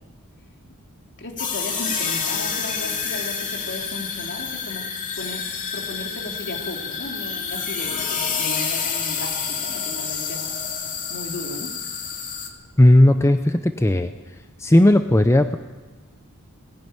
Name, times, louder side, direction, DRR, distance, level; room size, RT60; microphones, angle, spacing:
voice 1, 1.2-4.8 5.1-5.4 5.7-10.7 11.1-11.7, left 1 dB, 55° left, 1 dB, 3.4 m, -35 dB
sound 1, 1.4-12.5, left 6 dB, 35° left, 2.5 m, -28 dB
voice 2, 12.8-14.1 14.6-15.6, left 1 dB, 10° left, 8 dB, 0.6 m, -15 dB
20.0 x 16.0 x 9.2 m, 1.4 s
head